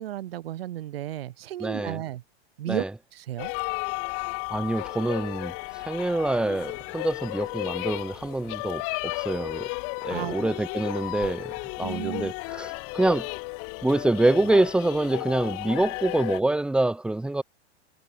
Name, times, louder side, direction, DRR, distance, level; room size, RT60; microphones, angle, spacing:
voice 1, 0.0-2.2 2.6-2.8 3.1-3.5 10.1-10.3 11.8-12.3, right 13 dB, 60° right, 1.6 m, -33 dB
voice 2, 1.6-2.0 2.7-2.9 4.5-5.5 5.8-9.7 10.0-13.3 13.8-17.4, right 2 dB, 5° right, 0.6 m, -26 dB
sound 1, 3.4-16.4, left 35 dB, 40° left, 2.1 m, -34 dB
figure-of-eight pair, 90°, 34 cm